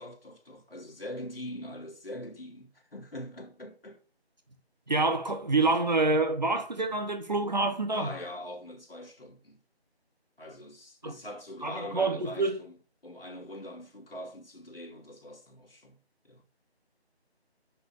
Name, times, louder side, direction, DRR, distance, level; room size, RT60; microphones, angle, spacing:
voice 1, 0.0-4.0 7.9-9.6 10.4-16.0 16.2-16.4, left 1 dB, 60° left, 3.2 m, -43 dB
voice 2, 4.9-8.1 11.0-11.1 11.6-12.6, right 3 dB, 40° right, 1.4 m, -27 dB
7.6 x 6.7 x 6.9 m
figure-of-eight pair, 165°, 33 cm